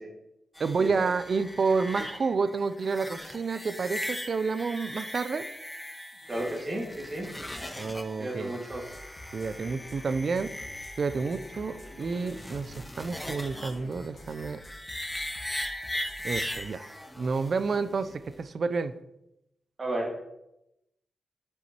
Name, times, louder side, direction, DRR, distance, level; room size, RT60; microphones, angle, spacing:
sound 1, 0.5-18.4, left 1 dB, 10° left, 0.6 m, -39 dB
voice 1, 0.6-5.5 7.8-8.6 9.3-10.6 11.0-14.6 16.2-16.8 17.2-19.0, right 4 dB, 55° right, 0.4 m, -29 dB
voice 2, 6.3-7.3 8.2-8.8 19.8-20.2, right 1 dB, 30° right, 1.9 m, -33 dB
sound 2, 8.7-16.5, left 1 dB, 50° left, 1.3 m, -48 dB
8.0 x 5.2 x 2.9 m
cardioid pair, 70°, 0 cm